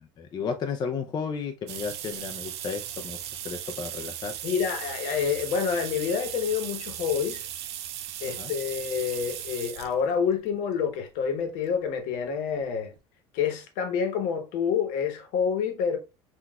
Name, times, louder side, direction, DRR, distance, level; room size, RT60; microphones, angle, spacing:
voice 1, 0.2-3.2 3.4-4.3 8.4-8.5, left 5 dB, 30° left, 0.4 m, -33 dB
sound 1, 1.7-9.9 10.8-10.9 12.2-12.3 12.6-12.7 13.0-13.1, right 11 dB, 85° right, 0.4 m, -37 dB
voice 2, 4.4-7.5 8.2-12.9 13.3-16.0, left 7 dB, 70° left, 0.9 m, -28 dB
3.9 x 2.3 x 2.2 m
supercardioid pair, 95°, 14 cm